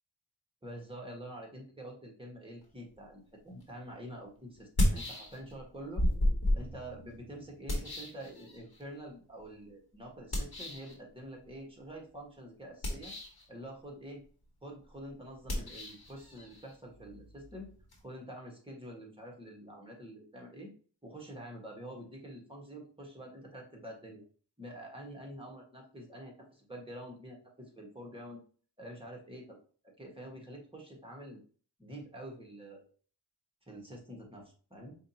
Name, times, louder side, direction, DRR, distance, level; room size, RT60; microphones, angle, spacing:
voice 1, 0.6-6.0 6.5-13.1 13.5-14.2 14.6-17.7 18.0-20.7 21.0-24.2 24.6-28.4 28.8-29.6 29.8-31.4 31.8-32.9 33.7-35.0, right 1 dB, 15° right, -1 dB, 1.5 m, -47 dB
sound 1, 3.6-3.7 4.6-5.6 6.0-8.8 10.3-10.9 12.7-13.5 15.4-18.0, left 1 dB, 60° left, 1.4 m, -33 dB
4.9 x 2.6 x 2.8 m, 0.42 s
cardioid pair, 40°, 42 cm